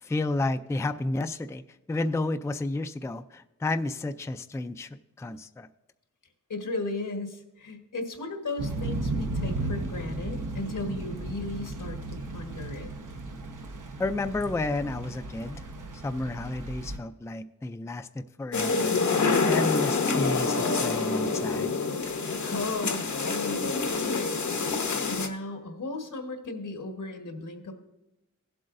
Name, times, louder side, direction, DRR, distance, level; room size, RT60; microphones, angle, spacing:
voice 1, 0.0-1.6 1.9-5.7 14.0-15.6 16.0-21.7, left 2 dB, 10° left, 9 dB, 0.3 m, -31 dB
voice 2, 6.5-12.9 22.2-24.4 25.0-27.7, left 2 dB, 85° left, 4 dB, 1.5 m, -35 dB
Thunder / Rain, 8.6-17.0, right 2 dB, 85° right, 1.0 m, -35 dB
sound 1, 18.5-25.3, left 4 dB, 70° left, 0.9 m, -27 dB
16.5 x 7.8 x 2.6 m, 0.96 s
wide cardioid pair, 100°, 30 cm